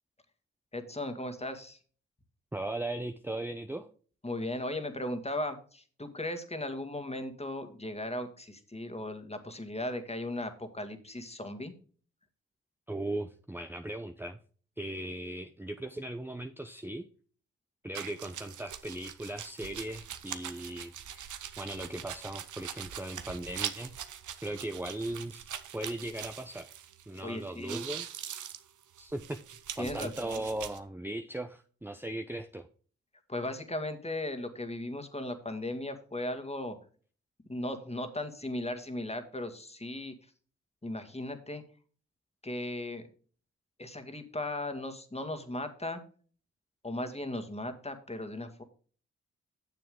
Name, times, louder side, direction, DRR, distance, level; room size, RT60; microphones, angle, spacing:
voice 1, 0.7-1.8 4.2-11.7 27.2-27.8 29.8-30.4 33.3-36.8 37.5-40.1 40.8-41.6 42.4-43.1 43.8-46.0 46.8-48.6, left 1 dB, 20° left, 8 dB, 1.9 m, -37 dB
voice 2, 2.5-3.9 12.9-14.4 14.8-17.1 17.8-25.5 25.7-26.7 27.1-28.1 29.0-29.4 29.8-32.7, right 1 dB, 5° right, 7 dB, 0.7 m, -38 dB
sound 1, 17.9-27.2 27.5-30.8, right 9 dB, 75° right, 0.9 m, -42 dB
9.5 x 6.9 x 3.7 m, 0.41 s
supercardioid pair, 40°, 31 cm